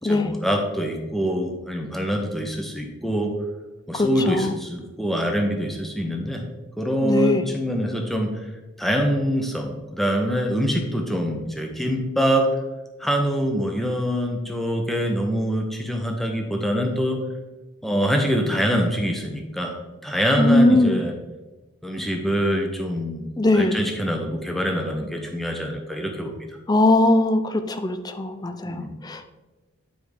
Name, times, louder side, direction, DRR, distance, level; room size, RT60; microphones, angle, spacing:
voice 1, 0.0-3.3 3.9-6.4 6.8-8.3 8.8-12.5 13.0-17.2 17.8-19.7 20.0-21.1 21.8-26.3 28.6-28.9, equal, ahead, 2 dB, 0.8 m, -24 dB
voice 2, 3.9-4.5 7.0-7.4 20.4-21.0 23.4-23.8 26.7-27.4 27.7-29.3, left 2 dB, 20° left, 9 dB, 0.4 m, -20 dB
9.5 x 4.8 x 3.4 m, 1.1 s
head